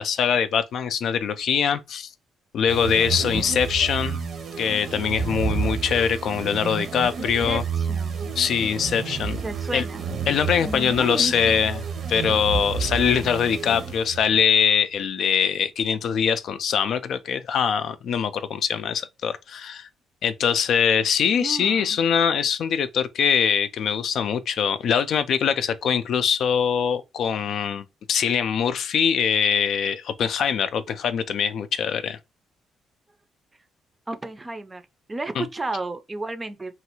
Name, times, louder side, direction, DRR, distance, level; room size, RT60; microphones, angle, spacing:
voice 1, 0.0-2.1 2.5-4.2 4.6-7.6 8.4-9.4 9.7-9.9 10.3-19.9 20.2-32.2 35.4-35.5, left 7 dB, 65° left, 0.3 m, -23 dB
sound 1, 2.7-14.4, right 6 dB, 60° right, 0.6 m, -30 dB
voice 2, 7.2-8.3 9.1-10.1 10.6-11.7 21.3-22.0 34.1-34.8 35.1-36.8, right 2 dB, 20° right, 0.4 m, -33 dB
3.1 x 2.3 x 2.9 m
cardioid pair, 90°, 0 cm